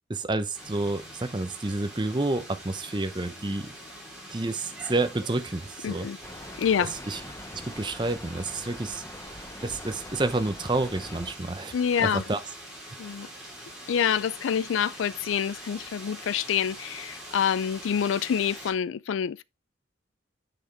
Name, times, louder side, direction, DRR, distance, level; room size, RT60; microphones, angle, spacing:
voice 1, 0.1-3.8 4.3-6.1 7.1-7.2 7.5-9.1 9.6-11.7 12.0-12.4, right 2 dB, 25° right, 0.7 m, -29 dB
sound 1, 0.5-18.7, right 1 dB, ahead, 3.4 m, -44 dB
voice 2, 5.8-6.2 6.6-6.9 11.7-12.2 13.0-13.3 13.9-19.4, left 8 dB, 80° left, 0.4 m, -27 dB
Rain, 6.2-11.3, left 1 dB, 15° left, 0.9 m, -43 dB
7.0 x 5.9 x 3.3 m
head